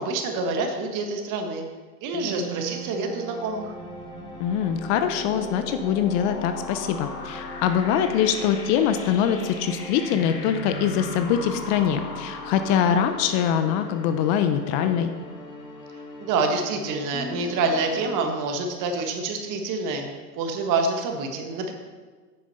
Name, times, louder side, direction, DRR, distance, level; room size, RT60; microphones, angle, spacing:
voice 1, 0.0-1.7 2.0-3.7 16.2-20.1 20.4-21.7, right 3 dB, 40° right, 4 dB, 1.6 m, -27 dB
sound 1, 2.1-18.9, right 1 dB, 10° left, 1.8 m, -41 dB
sound 2, 3.5-15.2, left 3 dB, 80° left, 2.0 m, -39 dB
voice 2, 4.4-15.1, left 8 dB, 45° left, 9 dB, 0.8 m, -23 dB
9.2 x 6.2 x 5.6 m, 1.5 s
hypercardioid pair, 105°, 48 cm